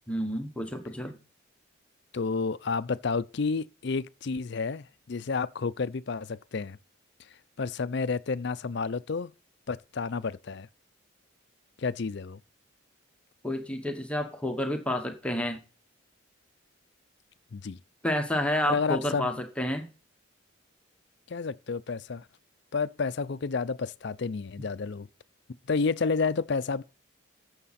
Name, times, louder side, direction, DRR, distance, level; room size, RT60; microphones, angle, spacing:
voice 1, 0.1-1.2 13.4-15.6 18.0-19.9, left 1 dB, 5° left, 1.1 m, -30 dB
voice 2, 2.1-6.8 7.6-9.3 9.7-10.7 11.8-12.4 17.5-17.8 18.6-19.3 21.3-22.2 22.7-25.1 25.7-26.8, left 4 dB, 55° left, 0.5 m, -30 dB
13.5 x 7.3 x 4.2 m
head